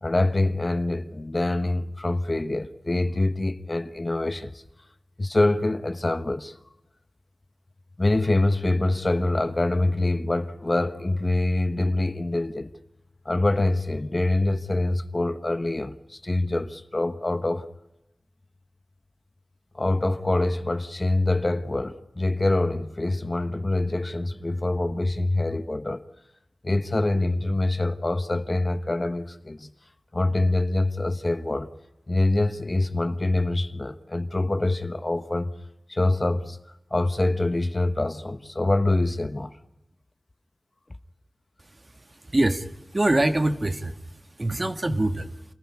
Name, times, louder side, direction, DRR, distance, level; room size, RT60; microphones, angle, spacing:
voice 1, 0.0-4.6 5.2-6.6 8.0-12.7 13.2-17.7 19.7-26.0 26.6-29.7 30.1-31.7 32.1-35.5 35.9-36.6 36.9-39.5, left 2 dB, 35° left, 1.2 m, -25 dB
voice 2, 42.2-42.7 42.9-44.0 44.4-45.3, right 1 dB, 35° right, 1.5 m, -23 dB
27.5 x 15.0 x 9.7 m
wide cardioid pair, 65°, 0 cm